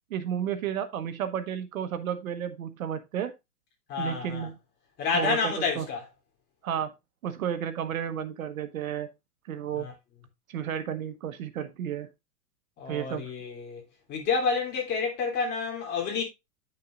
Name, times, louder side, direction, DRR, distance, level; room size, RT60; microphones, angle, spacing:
voice 1, 0.1-3.3 4.0-4.6 5.1-5.9 6.6-6.9 7.2-9.1 9.5-9.9 10.5-12.1 12.9-13.3, right 9 dB, 60° right, 1.2 m, -32 dB
voice 2, 3.9-4.5 5.0-6.0 9.8-9.9 12.8-13.8 14.1-16.2, left 5 dB, 20° left, 3.3 m, -29 dB
9.6 x 6.5 x 2.5 m
hypercardioid pair, 160°, 47 cm